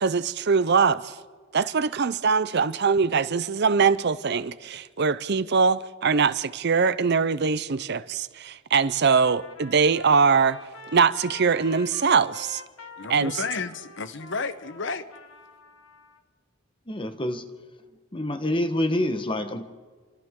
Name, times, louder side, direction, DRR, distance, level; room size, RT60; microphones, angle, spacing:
voice 1, 0.0-1.2 1.5-10.6 10.9-12.6 13.1-13.3, right 5 dB, 55° right, 0.6 m, -22 dB
Trumpet, 9.1-16.2, left 3 dB, 90° left, 1.6 m, -46 dB
voice 2, 13.0-15.1, left 4 dB, 60° left, 1.0 m, -32 dB
voice 3, 16.9-17.4 18.1-19.7, left 1 dB, 25° left, 1.2 m, -27 dB
28.5 x 25.0 x 3.8 m
head